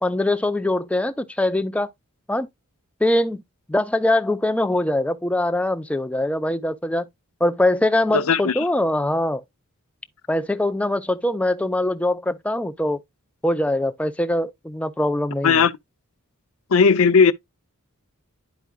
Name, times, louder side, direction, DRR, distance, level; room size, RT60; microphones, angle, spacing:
voice 1, 0.0-1.9 2.3-2.5 3.0-3.4 3.7-7.1 7.4-9.4 10.3-13.0 13.4-15.6, left 1 dB, 5° left, 0.5 m, -22 dB
voice 2, 8.1-8.6 15.4-15.7 16.7-17.3, left 5 dB, 65° left, 0.5 m, -16 dB
11.5 x 4.6 x 2.2 m
head